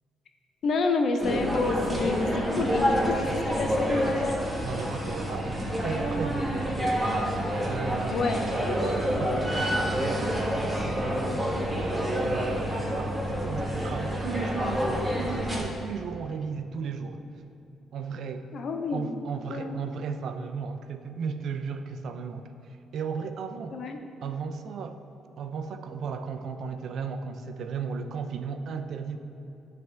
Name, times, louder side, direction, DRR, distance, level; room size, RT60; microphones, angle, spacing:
voice 1, 0.6-4.4 8.1-8.4 18.5-19.1 19.5-19.8 23.7-24.0, left 3 dB, 65° left, 5 dB, 0.6 m, -29 dB
sound 1, 1.2-15.6, equal, 5° right, 1.3 m, -28 dB
voice 2, 4.6-6.9 7.6-8.4 9.2-10.5 10.8-11.5 12.2-17.2 17.9-18.5 18.9-22.5 22.9-23.8 24.2-25.0 25.4-29.2, right 5 dB, 70° right, 7 dB, 0.4 m, -35 dB
10.0 x 3.4 x 3.3 m, 2.9 s
cardioid pair, 90°, 0 cm